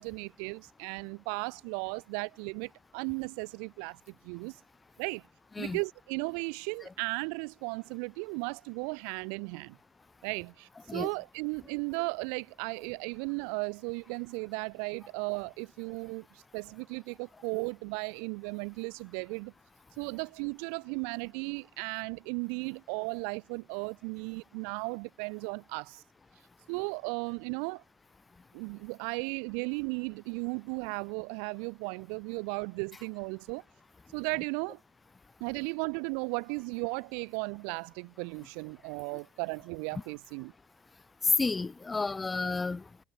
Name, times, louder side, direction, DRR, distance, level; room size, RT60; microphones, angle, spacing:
voice 1, 0.0-4.6 5.0-5.2 5.6-9.8 10.2-19.5 20.0-26.0 26.7-27.8 28.5-33.6 34.1-34.8 35.4-40.5, right 40 dB or more, 80° right, 6.0 m, -36 dB
voice 2, 41.2-43.0, left 3 dB, 15° left, 6.2 m, -30 dB
cardioid pair, 125°, 0 cm